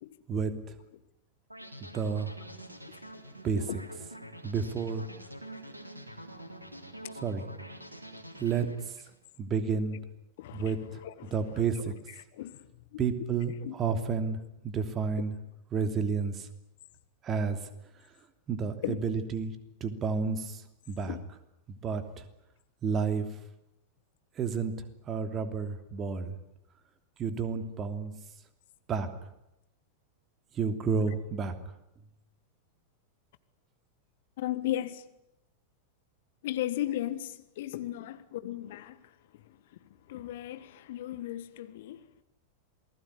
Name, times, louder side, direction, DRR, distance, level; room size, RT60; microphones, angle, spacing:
sound 1, 1.5-9.2, equal, 85° right, 3.4 m, -46 dB
voice 1, 1.8-2.3 3.4-3.6 4.4-5.1 7.2-7.5 8.4-8.6 9.4-10.0 10.5-10.8 11.3-11.9 13.0-14.4 14.6-15.3 15.7-16.5 17.2-17.6 18.5-19.5 19.8-20.6 20.9-21.2 21.7-22.0 22.8-23.3 24.4-24.7 25.1-26.3 27.2-28.1 28.9-29.1 30.5-31.5, right 5 dB, 30° right, 3.1 m, -30 dB
voice 2, 10.4-11.9 12.3-12.6 12.9-13.0 13.6-13.7 18.8-19.0 21.1-21.2 34.4-35.0 36.4-39.6 40.1-42.1, left 13 dB, 55° left, 1.5 m, -36 dB
28.0 x 20.0 x 9.9 m
figure-of-eight pair, 90°, 0 cm